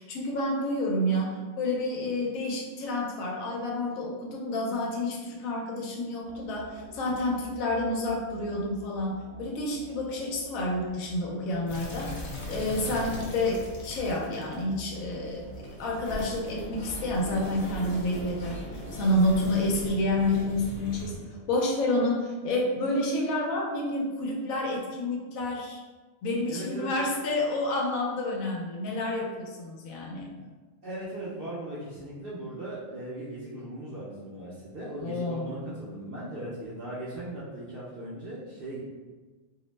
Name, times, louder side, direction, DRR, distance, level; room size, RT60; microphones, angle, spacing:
voice 1, 0.0-21.2 21.5-25.8 26.2-30.3 35.0-35.7, left 1 dB, 80° left, -1 dB, 1.0 m, -29 dB
sound 1, 6.2-21.4, right 4 dB, 75° right, 1.0 m, -49 dB
sound 2, 11.7-21.2, equal, 50° left, 0.7 m, -40 dB
voice 2, 26.5-26.9 30.8-38.9, right 1 dB, 60° right, -7 dB, 0.6 m, -38 dB
2.6 x 2.0 x 3.0 m, 1.3 s
omnidirectional pair, 1.4 m